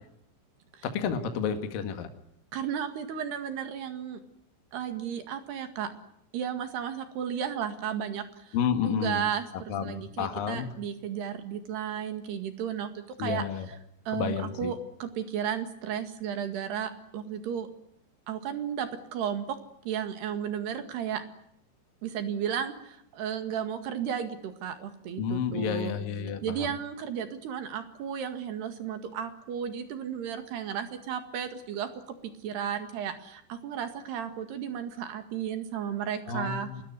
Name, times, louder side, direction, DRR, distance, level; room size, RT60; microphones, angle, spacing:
voice 1, 0.8-2.1 8.5-9.2 9.7-10.7 13.2-13.7 14.1-14.7 25.2-26.7 36.3-36.8, left 7 dB, 55° left, 7 dB, 3.0 m, -30 dB
voice 2, 2.5-4.2 4.7-5.9 6.3-8.6 8.8-13.4 14.1-17.7 18.3-19.5 19.9-21.2 22.0-25.9 26.4-31.9 32.4-36.7, right 8 dB, 60° right, 8 dB, 3.7 m, -34 dB
25.5 x 20.0 x 9.8 m, 0.73 s
omnidirectional pair, 5.8 m